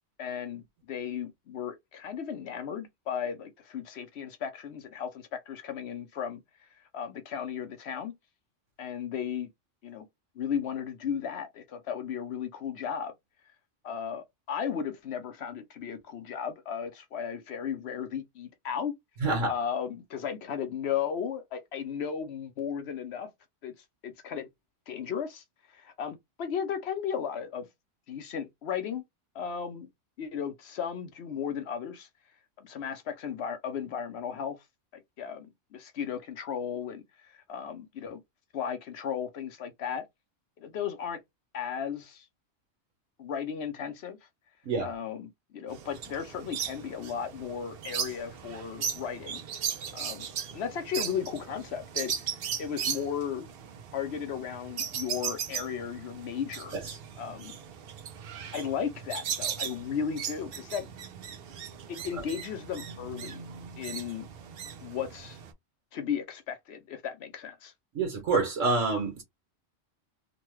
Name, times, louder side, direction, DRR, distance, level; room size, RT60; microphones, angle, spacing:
voice 1, 0.2-6.4 6.9-8.1 8.8-9.5 9.8-10.1 10.4-13.1 13.8-18.9 19.5-23.3 23.6-23.7 24.0-24.5 24.9-25.4 25.7-27.7 28.1-29.0 29.3-29.9 30.2-32.1 32.6-34.6 34.9-38.2 38.5-40.0 40.6-41.2 41.5-42.3 43.2-44.2 44.8-49.4 49.9-50.3 50.5-53.5 53.9-56.7 57.2-57.6 58.5-60.9 61.9-63.4 63.8-64.3 64.8-65.4 65.9-67.7, left 7 dB, 65° left, 0.8 m, -35 dB
voice 2, 19.2-19.5 44.7-44.9 56.8-57.0 67.9-69.2, right 3 dB, 90° right, 1.4 m, -27 dB
sound 1, 45.7-65.5, right 8 dB, 60° right, 0.7 m, -38 dB
3.0 x 2.2 x 3.1 m
omnidirectional pair, 1.3 m